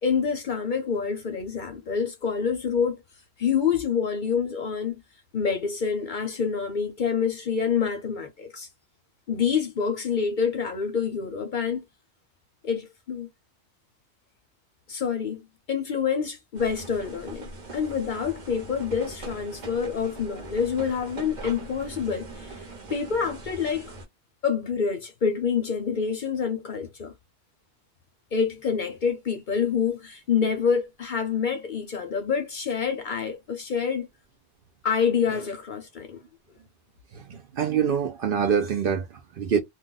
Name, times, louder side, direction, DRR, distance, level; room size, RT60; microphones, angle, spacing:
voice 1, 0.0-3.0 3.4-5.0 5.3-8.7 9.3-11.8 12.6-13.3 14.9-22.6 22.9-23.9 24.4-27.1 28.3-34.1 34.8-36.2, left 6 dB, 55° left, 0.6 m, -27 dB
sound 1, 16.5-24.0, right 2 dB, 45° right, 1.0 m, -41 dB
voice 2, 37.1-39.6, right 7 dB, 60° right, 0.6 m, -25 dB
2.3 x 2.2 x 3.8 m
omnidirectional pair, 1.2 m